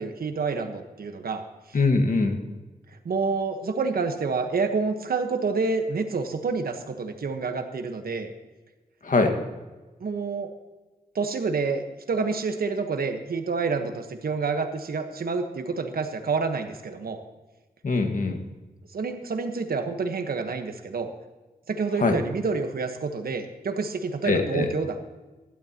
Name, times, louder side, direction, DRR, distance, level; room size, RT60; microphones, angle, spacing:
voice 1, 0.0-1.8 3.0-8.3 10.0-10.5 11.1-11.8 12.1-17.2 18.9-21.1 21.7-25.1, right 4 dB, 80° right, 6 dB, 1.3 m, -28 dB
voice 2, 1.7-2.4 9.0-9.3 17.8-18.4 22.0-22.2 24.3-24.7, left 3 dB, 60° left, 4 dB, 1.7 m, -22 dB
16.5 x 12.0 x 3.0 m, 1.2 s
cardioid pair, 70°, 15 cm